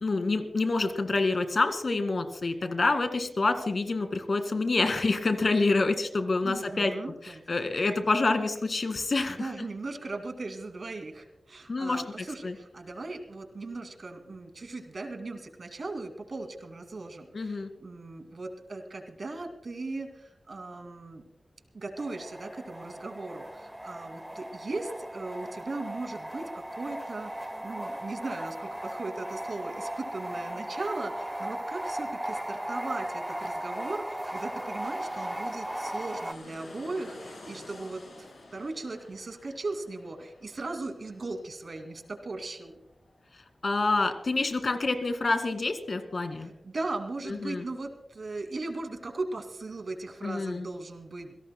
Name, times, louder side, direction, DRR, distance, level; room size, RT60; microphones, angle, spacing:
voice 1, 0.0-6.9 7.2-9.5 11.7-12.6 17.3-17.7 43.6-46.5 47.3-47.7 50.2-50.7, left 3 dB, 60° left, 8 dB, 2.0 m, -27 dB
voice 2, 6.4-7.4 9.3-21.2 21.7-42.7 46.4-51.3, right 3 dB, 65° right, 6 dB, 2.4 m, -38 dB
sound 1, 22.0-36.3, right 1 dB, 10° right, 0.8 m, -37 dB
sound 2, 32.5-43.6 44.0-44.1, left 2 dB, 85° left, 6.3 m, -52 dB
27.5 x 17.0 x 2.2 m, 0.83 s
wide cardioid pair, 75°, 0 cm